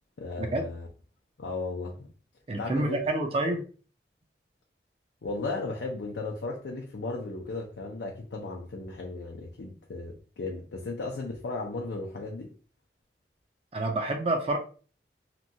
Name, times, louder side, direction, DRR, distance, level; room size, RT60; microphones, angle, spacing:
voice 1, 0.2-0.9 1.4-2.1 2.6-3.0 5.2-12.5, left 3 dB, 80° left, 0.5 m, -35 dB
voice 2, 2.5-3.6 13.7-14.6, right 2 dB, 35° right, 0.4 m, -28 dB
2.9 x 2.3 x 2.6 m
head